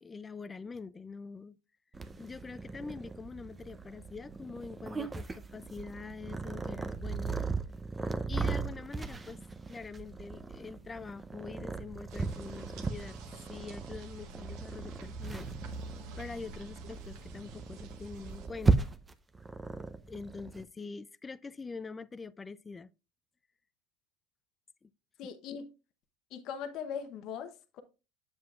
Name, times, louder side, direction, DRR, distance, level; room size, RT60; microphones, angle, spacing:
voice 1, 0.0-1.6 2.2-7.4 8.3-9.4 9.7-13.2 13.5-15.5 16.2-18.9 20.1-22.9 24.8-24.9, left 4 dB, 20° left, 0.4 m, -44 dB
Purr, 1.9-20.6, right 4 dB, 20° right, 0.6 m, -36 dB
sound 1, 12.1-18.5, right 3 dB, 60° right, 1.0 m, -46 dB
voice 2, 25.2-25.7 26.3-27.8, left 7 dB, 55° left, 0.8 m, -40 dB
7.5 x 7.4 x 2.4 m
hypercardioid pair, 90°, 0 cm